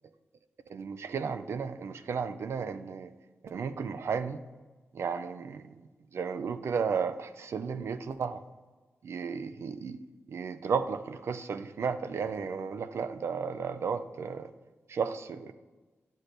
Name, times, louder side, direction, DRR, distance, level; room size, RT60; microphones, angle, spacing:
voice 1, 0.7-3.1 3.4-4.4 4.9-5.7 6.1-8.4 9.0-10.0 10.3-14.5 14.9-15.5, right 6 dB, 70° right, 10 dB, 0.4 m, -33 dB
9.8 x 6.2 x 2.6 m, 1.3 s
wide cardioid pair, 105°, 5 cm